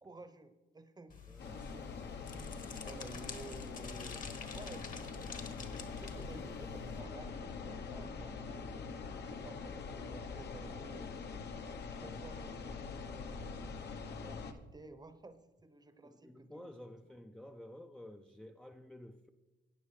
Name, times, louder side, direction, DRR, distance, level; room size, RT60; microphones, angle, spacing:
voice 1, 0.0-1.9 2.2-2.5 2.8-8.6 9.3-11.2 12.0-13.7 14.2-16.7, right 3 dB, 20° right, 10 dB, 0.9 m, -54 dB
sound 1, 1.1-7.0, left 6 dB, 40° left, 1.3 m, -48 dB
voice 2, 1.3-1.7 8.3-8.5 16.0-19.3, left 1 dB, 5° left, 3 dB, 0.5 m, -52 dB
sound 2, 1.4-14.5, left 4 dB, 60° left, 0.9 m, -44 dB
14.0 x 9.2 x 3.2 m, 1.2 s
cardioid pair, 90°, 20 cm